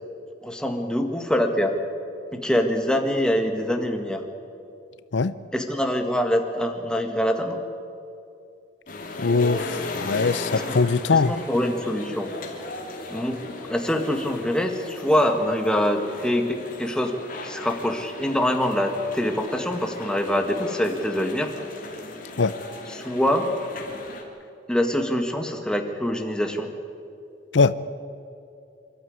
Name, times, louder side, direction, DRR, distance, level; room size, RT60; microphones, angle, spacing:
voice 1, 0.4-1.8 2.3-4.2 5.5-7.6 10.5-10.8 11.3-12.3 13.1-17.1 17.4-21.5 22.9-23.5 24.7-26.7, equal, 5° left, 4 dB, 1.7 m, -24 dB
sound 1, 8.9-24.2, left 2 dB, 50° left, 2.9 m, -36 dB
voice 2, 9.2-11.4 22.4-22.5 27.5-27.7, left 4 dB, 90° left, 15 dB, 0.6 m, -21 dB
26.5 x 12.5 x 9.5 m, 2.6 s
head